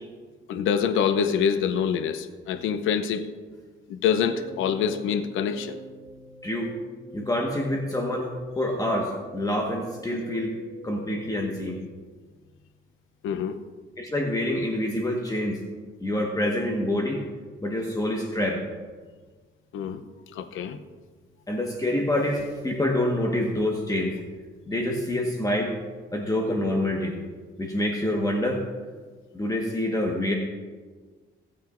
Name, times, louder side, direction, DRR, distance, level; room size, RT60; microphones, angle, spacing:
voice 1, 0.5-3.3 3.9-5.8 13.2-13.6 19.7-20.8, left 7 dB, 90° left, 11 dB, 0.7 m, -26 dB
sound 1, 4.2-11.8, left 1 dB, 60° left, 3.0 m, -45 dB
voice 2, 7.1-10.5 10.8-11.8 14.0-15.6 16.0-17.2 17.6-18.7 21.5-24.2 24.7-25.7 26.1-27.2 27.6-28.6 29.3-30.3, left 1 dB, 20° left, 0 dB, 1.4 m, -26 dB
18.0 x 8.7 x 2.6 m, 1.4 s
cardioid pair, 90°, 20 cm